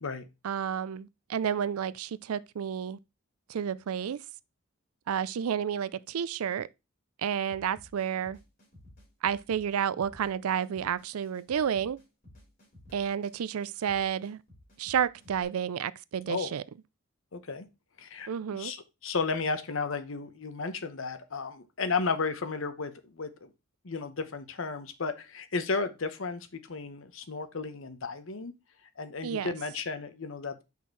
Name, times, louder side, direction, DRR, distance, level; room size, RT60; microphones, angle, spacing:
voice 1, 0.4-3.0 3.5-4.2 5.1-6.7 7.2-8.4 9.2-12.0 12.9-14.4 14.8-16.6 18.3-18.7 29.2-29.5, right 8 dB, 90° right, 0.4 m, -31 dB
sound 1, 7.5-15.4, left 1 dB, 40° left, 3.3 m, -56 dB
voice 2, 17.3-17.7 18.0-23.5 23.8-28.5 29.0-30.6, left 4 dB, 65° left, 0.9 m, -34 dB
5.6 x 4.3 x 4.5 m
head